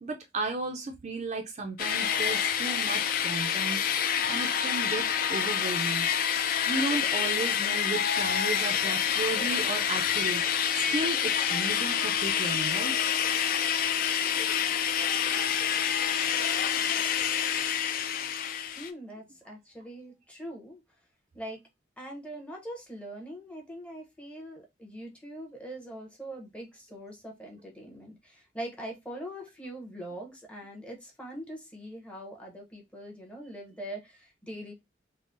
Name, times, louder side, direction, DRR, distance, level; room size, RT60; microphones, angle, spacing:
voice 1, 0.0-5.0 5.3-6.4 6.7-10.4 10.7-13.0, right 3 dB, 35° right, 0.4 m, -34 dB
sound 1, 1.8-18.9, left 8 dB, 50° left, 0.3 m, -27 dB
voice 2, 18.8-20.8 21.3-21.6 22.0-34.7, right 1 dB, 5° left, 0.7 m, -42 dB
3.6 x 2.0 x 2.5 m
head